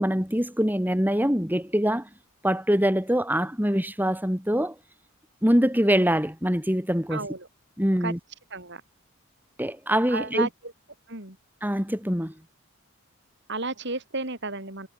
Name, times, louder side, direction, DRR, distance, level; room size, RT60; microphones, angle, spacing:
voice 1, 0.0-2.1 2.4-4.8 5.4-7.3 7.8-8.2 9.6-10.5 11.6-12.3, equal, 10° right, 5.4 m, -24 dB
voice 2, 7.1-7.5 8.0-8.1 8.5-8.8 10.1-10.5 11.1-11.4 13.5-14.9, right 3 dB, 55° right, 6.7 m, -32 dB
head